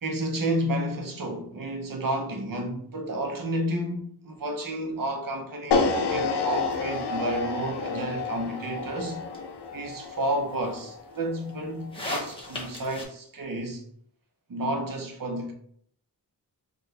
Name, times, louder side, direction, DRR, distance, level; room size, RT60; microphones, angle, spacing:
voice 1, 0.0-9.2 9.7-13.8 14.5-15.5, right 1 dB, 55° right, 0.8 m, -31 dB
sound 1, 5.7-11.9, left 4 dB, 75° left, 0.6 m, -29 dB
sound 2, 6.5-13.0, left 1 dB, 15° left, 0.9 m, -41 dB
4.5 x 2.4 x 3.2 m
wide cardioid pair, 110°, 40 cm